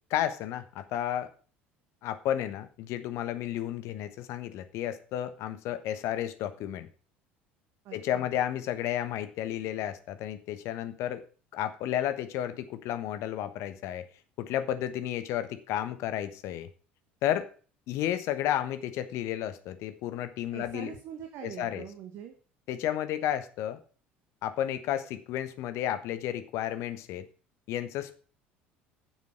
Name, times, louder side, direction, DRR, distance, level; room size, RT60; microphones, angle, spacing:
voice 1, 0.1-1.3 2.0-6.9 7.9-11.2 11.5-14.1 14.4-16.7 17.2-17.5 17.9-20.9 21.4-21.8 22.7-23.8 24.4-27.3 27.7-28.2, left 11 dB, 50° left, 11 dB, 1.2 m, -32 dB
voice 2, 7.8-8.3 20.5-22.4, right 9 dB, 50° right, 5 dB, 1.7 m, -43 dB
9.3 x 7.4 x 6.5 m, 0.39 s
figure-of-eight pair, 60°, 6 cm